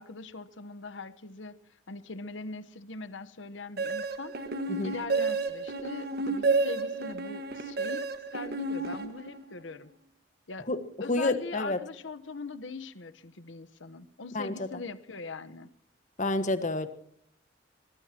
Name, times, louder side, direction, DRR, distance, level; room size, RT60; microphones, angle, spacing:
voice 1, 0.0-1.6 1.9-4.4 4.8-9.9 10.5-10.7 11.0-15.7, left 3 dB, 75° left, 12 dB, 1.1 m, -41 dB
sound 1, 3.8-9.6, right 3 dB, 55° right, 1.6 m, -31 dB
voice 2, 11.1-11.8 14.3-14.7 16.2-16.9, left 2 dB, 40° left, 11 dB, 1.5 m, -29 dB
24.0 x 19.5 x 2.9 m, 0.65 s
head